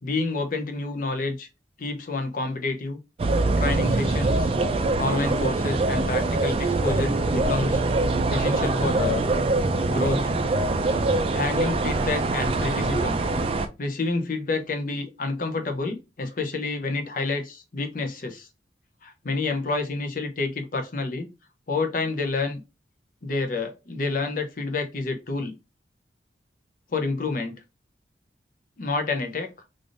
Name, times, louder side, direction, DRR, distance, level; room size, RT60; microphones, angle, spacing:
voice 1, 0.0-1.5 1.8-3.0 3.6-4.5 5.0-7.8 8.3-9.2 9.9-10.3 11.3-13.5 13.8-18.5 19.0-21.3 21.7-22.6 23.2-25.5 26.9-27.5 28.8-29.5, left 3 dB, 50° left, 0.6 m, -28 dB
sound 1, 3.2-13.7, right 2 dB, 35° right, 0.3 m, -24 dB
3.3 x 2.5 x 2.5 m
head